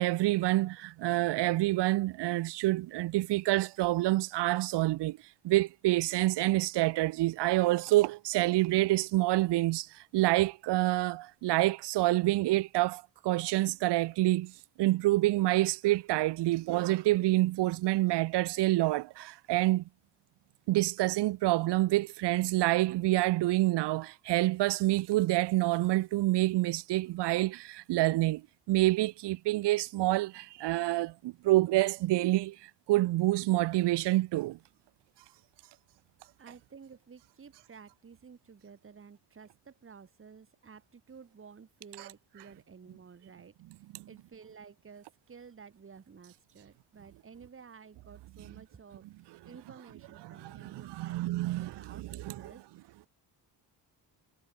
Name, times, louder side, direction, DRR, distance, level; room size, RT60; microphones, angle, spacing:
voice 1, 0.0-5.2 5.4-14.5 14.8-19.8 20.7-28.4 28.7-34.6 42.0-42.1 43.9-44.0 48.4-48.6 49.3-49.5 50.1-52.6, right 17 dB, 75° right, 0.7 m, -27 dB
voice 2, 36.4-53.1, right 6 dB, 30° right, 5.7 m, -53 dB
cardioid pair, 165°, 42 cm